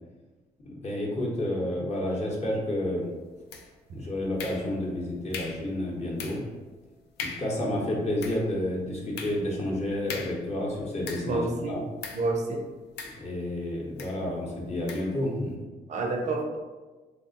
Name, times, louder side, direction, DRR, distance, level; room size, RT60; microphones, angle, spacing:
voice 1, 0.6-3.1 3.9-6.5 7.2-11.8 13.1-15.6, left 1 dB, 40° left, -3 dB, 0.8 m, -30 dB
sound 1, 3.5-3.9 4.4-4.9 5.3-5.7 6.2-6.5 6.8-6.9 7.2-7.6 8.0-11.5 12.0-12.3 13.0-13.6 14.0-14.2 14.9-15.2, left 5 dB, 85° left, 0.4 m, -40 dB
voice 2, 11.3-11.8 12.1-12.6 15.9-16.6, right 2 dB, 45° right, 2 dB, 0.5 m, -29 dB
2.4 x 2.1 x 3.8 m, 1.3 s
cardioid pair, 90°, 17 cm